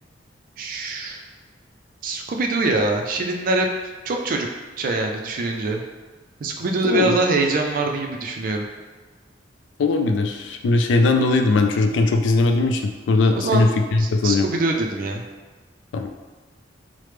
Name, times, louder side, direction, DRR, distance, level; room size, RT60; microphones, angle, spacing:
voice 1, 0.6-1.2 2.0-3.7 4.0-4.5 4.8-5.8 6.4-8.7 13.3-13.7 14.0-15.2, right 2 dB, 50° right, 2 dB, 0.3 m, -23 dB
voice 2, 6.8-7.2 9.8-14.4 15.9-16.1, left 3 dB, 75° left, 5 dB, 0.3 m, -19 dB
3.1 x 2.0 x 3.2 m, 1.3 s
head